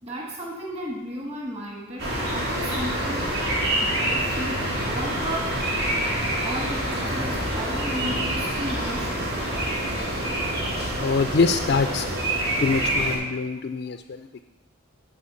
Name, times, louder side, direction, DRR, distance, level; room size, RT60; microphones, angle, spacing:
voice 1, 0.0-3.3 3.8-5.7 6.4-9.3, equal, 30° right, -4 dB, 1.9 m, -34 dB
sound 1, 2.0-13.1, right 1 dB, 85° right, 4.0 m, -26 dB
voice 2, 11.0-12.1 12.6-14.3, left 4 dB, 50° left, 8 dB, 0.4 m, -24 dB
11.5 x 4.8 x 7.0 m, 1.2 s
head